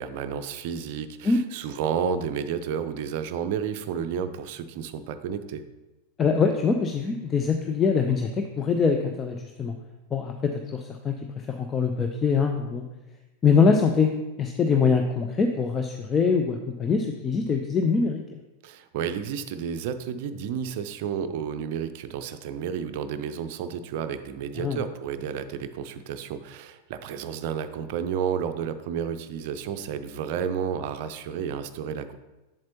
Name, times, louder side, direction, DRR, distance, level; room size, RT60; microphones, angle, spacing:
voice 1, 0.0-5.6 18.6-32.2, right 7 dB, 50° right, 9 dB, 0.5 m, -31 dB
voice 2, 6.2-9.7 10.1-12.8 13.4-14.1 14.4-18.4 24.6-24.8, left 5 dB, 20° left, 5 dB, 0.5 m, -23 dB
7.8 x 7.4 x 2.9 m, 1.1 s
figure-of-eight pair, 90°, 0 cm